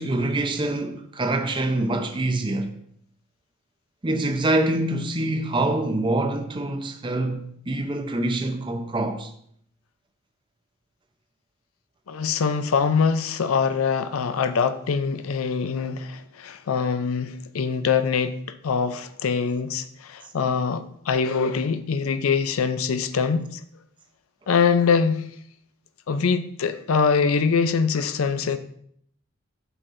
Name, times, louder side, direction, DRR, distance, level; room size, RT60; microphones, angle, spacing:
voice 1, 0.0-2.7 4.0-9.3 20.5-20.6, right 2 dB, 25° right, 0.5 m, -25 dB
voice 2, 12.1-18.4 18.6-23.6 24.5-25.3 26.1-28.6, left 5 dB, 90° left, 0.5 m, -23 dB
8.0 x 5.8 x 2.6 m
head